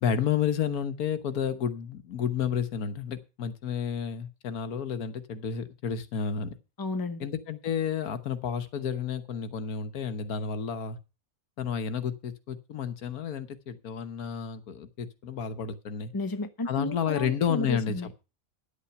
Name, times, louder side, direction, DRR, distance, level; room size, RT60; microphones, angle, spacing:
voice 1, 0.0-6.5 7.2-11.0 11.6-16.1 16.7-17.9, left 7 dB, 80° left, 1.5 m, -31 dB
voice 2, 6.8-7.3 16.1-18.1, left 2 dB, 20° left, 0.8 m, -33 dB
11.0 x 8.5 x 5.7 m
omnidirectional pair, 1.5 m